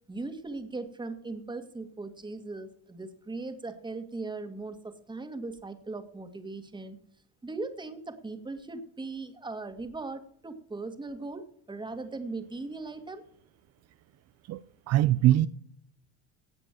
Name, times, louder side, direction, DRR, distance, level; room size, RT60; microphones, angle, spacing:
voice 1, 0.1-7.0 7.4-13.2, right 3 dB, 15° right, 1.9 m, -39 dB
voice 2, 14.9-15.5, right 14 dB, 50° right, 0.6 m, -21 dB
17.5 x 6.0 x 7.6 m
supercardioid pair, 95°, 33 cm